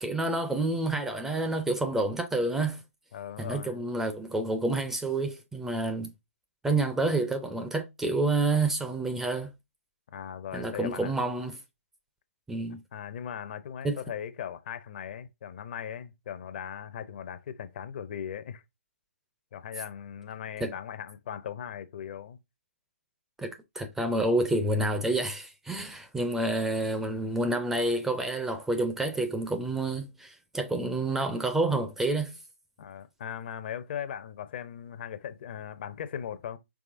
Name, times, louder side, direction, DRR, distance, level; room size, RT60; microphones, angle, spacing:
voice 1, 0.0-2.8 3.4-6.1 6.6-9.5 10.5-11.6 12.5-12.8 13.8-14.0 20.6-20.7 23.4-32.3, right 2 dB, 5° right, 0.5 m, -28 dB
voice 2, 3.1-3.8 10.1-11.1 12.9-18.6 19.5-22.4 32.8-36.6, left 9 dB, 45° left, 0.6 m, -38 dB
4.8 x 3.2 x 2.5 m
figure-of-eight pair, 140°, 7 cm